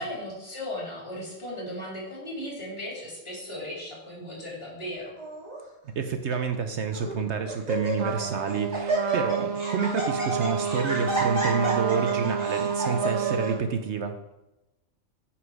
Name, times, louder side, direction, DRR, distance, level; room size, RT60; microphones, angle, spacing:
voice 1, 0.0-5.1, left 1 dB, 45° left, -4 dB, 3.5 m, -36 dB
Laughter, 5.2-5.6 6.3-6.4 6.9-7.2 7.5-8.2 8.5-13.5, right 2 dB, 30° right, 2.5 m, -30 dB
voice 2, 6.0-14.2, right 5 dB, 65° right, 7 dB, 0.9 m, -29 dB
Trumpet, 8.0-13.6, right 7 dB, 80° right, 1.2 m, -29 dB
9.5 x 5.9 x 4.8 m, 0.96 s
omnidirectional pair, 1.4 m